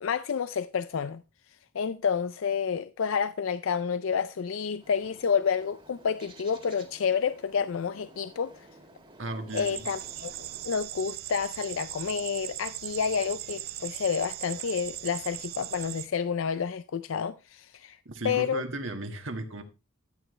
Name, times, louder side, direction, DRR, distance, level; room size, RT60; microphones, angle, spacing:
voice 1, 0.0-1.2 1.5-8.7 9.5-18.0 18.2-18.6, left 6 dB, 75° left, 0.4 m, -29 dB
Bird, 4.7-10.7, right 2 dB, 25° right, 2.0 m, -53 dB
voice 2, 9.2-9.8 18.1-19.6, right 2 dB, 65° right, 1.7 m, -35 dB
sound 1, 9.5-16.1, right 14 dB, 50° right, 0.5 m, -39 dB
13.5 x 8.9 x 3.2 m
head